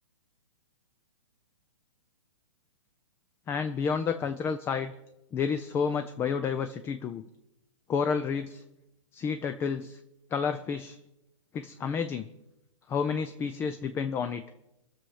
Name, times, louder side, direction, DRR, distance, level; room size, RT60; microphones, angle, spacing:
voice 1, 3.5-4.9 5.3-7.2 7.9-8.6 9.1-10.0 10.3-11.0 11.5-12.3 12.9-14.4, left 6 dB, 15° left, 10 dB, 0.4 m, -30 dB
21.0 x 7.1 x 5.6 m, 0.91 s
hypercardioid pair, 135°, 17 cm